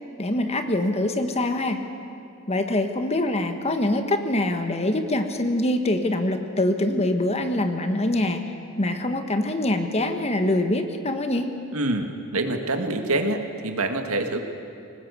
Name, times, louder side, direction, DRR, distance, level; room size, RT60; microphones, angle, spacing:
voice 1, 0.2-1.8 2.5-8.4 8.8-11.5, left 1 dB, 30° left, 7 dB, 1.4 m, -24 dB
voice 2, 11.7-14.4, right 2 dB, 75° right, 5 dB, 1.9 m, -26 dB
21.0 x 19.0 x 8.2 m, 2.6 s
head